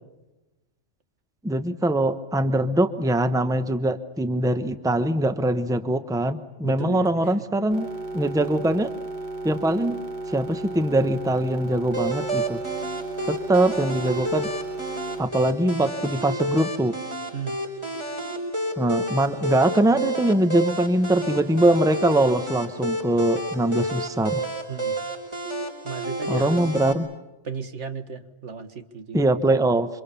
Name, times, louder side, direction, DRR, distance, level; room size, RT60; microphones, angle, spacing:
voice 1, 1.4-7.9 8.1-8.9 9.4-10.0 10.3-12.6 13.3-14.5 15.2-17.0 18.8-24.4 26.3-27.1 29.1-29.9, right 1 dB, 5° right, 10 dB, 1.0 m, -22 dB
voice 2, 6.6-7.5 17.3-17.6 24.7-25.0 25.8-27.0 27.4-29.3, right 6 dB, 70° right, 9 dB, 1.9 m, -35 dB
sound 1, 7.7-15.2, right 2 dB, 40° right, 1.5 m, -34 dB
sound 2, 11.9-26.9, right 1 dB, 25° right, 5.4 m, -30 dB
28.0 x 25.5 x 7.0 m, 1.0 s
omnidirectional pair, 1.3 m